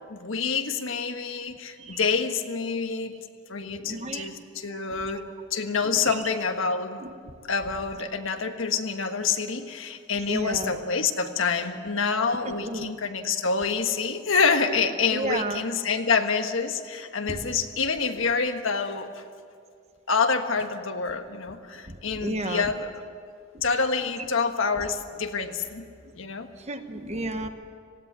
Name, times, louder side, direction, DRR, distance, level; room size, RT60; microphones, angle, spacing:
voice 1, 0.1-3.1 3.5-5.3 5.5-7.0 7.5-19.2 20.1-22.9 23.6-25.9 26.1-26.5, left 5 dB, 70° left, 6 dB, 1.4 m, -27 dB
voice 2, 3.8-4.3 4.7-5.2 5.8-6.1 7.0-7.3 10.2-10.8 12.4-12.9 15.1-15.7 17.3-17.5 21.8-22.7 23.5-23.6 24.0-24.3 24.8-24.9 26.0-26.1 26.6-27.5, right 2 dB, 30° right, 8 dB, 1.1 m, -34 dB
19.0 x 16.5 x 9.6 m, 2.1 s
head